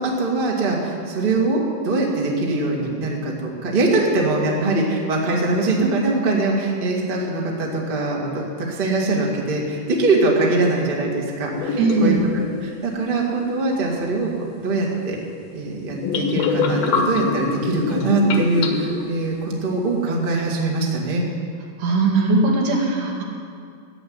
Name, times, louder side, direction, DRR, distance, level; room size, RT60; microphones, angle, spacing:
voice 1, 0.0-14.3 14.6-15.2 15.5-21.2, right 2 dB, 35° right, -2 dB, 0.8 m, -22 dB
sound 1, 11.5-12.5 15.9-19.2, left 4 dB, 65° left, 2.5 m, -24 dB
voice 2, 11.8-12.2 21.8-23.2, right 3 dB, 75° right, -2 dB, 4.2 m, -19 dB
14.0 x 8.2 x 9.6 m, 2.2 s
omnidirectional pair, 4.9 m